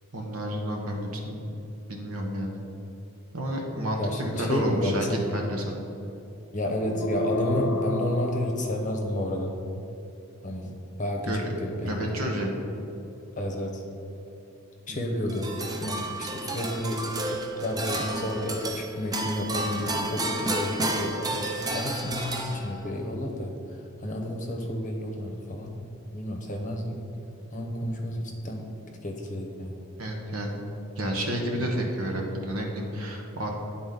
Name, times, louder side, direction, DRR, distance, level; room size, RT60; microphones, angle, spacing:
voice 1, 0.1-1.4 1.9-2.5 3.3-5.7 11.3-11.4 11.8-12.5 14.9-15.0 30.0-30.6 30.9-33.5, equal, 85° right, 0 dB, 1.1 m, -30 dB
voice 2, 4.0-5.2 6.5-9.6 10.4-10.7 11.0-12.1 13.3-13.8 14.9-15.5 15.8-23.5 24.0-25.8 26.1-27.0 27.5-28.7 29.0-29.8, left 1 dB, 40° left, 2 dB, 0.8 m, -31 dB
sound 1, 6.8-9.4, left 2 dB, 85° left, 0.4 m, -32 dB
sound 2, 15.3-23.0, right 2 dB, 20° right, 0.5 m, -31 dB
9.9 x 4.0 x 3.9 m, 2.9 s
head